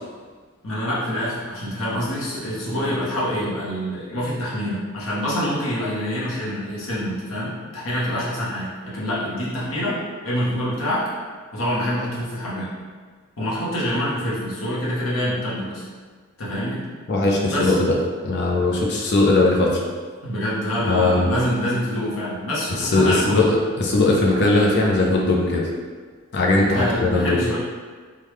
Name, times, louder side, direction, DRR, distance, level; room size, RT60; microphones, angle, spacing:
voice 1, 0.6-11.1 11.5-12.7 13.4-15.8 16.4-16.8 17.5-17.8 18.6-18.7 20.2-23.5 26.7-27.6, equal, 70° left, -7 dB, 1.0 m, -26 dB
voice 2, 17.1-18.0 18.2-19.8 20.9-21.3 22.8-25.6 26.3-27.4, left 2 dB, 55° left, -2 dB, 0.6 m, -19 dB
3.6 x 2.2 x 3.1 m, 1.5 s
head